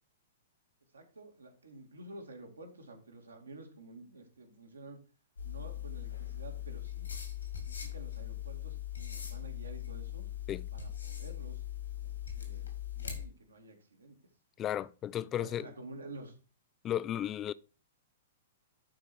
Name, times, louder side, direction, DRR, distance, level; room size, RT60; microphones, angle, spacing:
voice 1, 0.9-5.0 5.4-7.1 7.6-10.2 10.7-11.6 12.0-14.2 15.4-16.3, right 2 dB, 75° right, 2.5 m, -50 dB
sound 1, 5.4-13.3, left 11 dB, 75° left, 3.1 m, -40 dB
voice 2, 14.6-15.7 16.8-17.5, left 11 dB, 25° left, 0.4 m, -34 dB
11.5 x 5.0 x 4.5 m
figure-of-eight pair, 105°, 0 cm